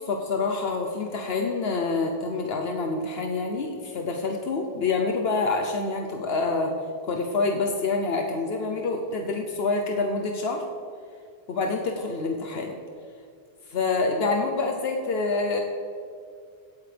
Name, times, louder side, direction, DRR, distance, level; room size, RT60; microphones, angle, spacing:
voice 1, 0.0-6.8 7.0-10.6 11.5-12.8 13.7-15.6, left 3 dB, 75° left, 3 dB, 1.0 m, -27 dB
17.0 x 8.3 x 3.4 m, 2.2 s
omnidirectional pair, 1.0 m